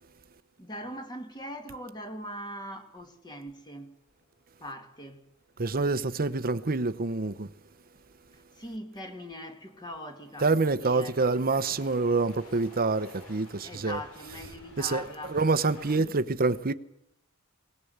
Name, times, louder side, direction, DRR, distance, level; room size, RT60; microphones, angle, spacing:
voice 1, 0.6-4.0 4.6-5.2 8.6-11.4 13.6-15.4 16.0-16.2, equal, 20° left, 2.4 m, -41 dB
sound 1, 2.6-16.0, left 1 dB, 80° left, 6.1 m, -54 dB
voice 2, 5.6-7.5 10.4-14.0 14.8-15.0 15.3-16.7, right 3 dB, 40° right, 0.9 m, -26 dB
20.5 x 19.0 x 8.1 m
head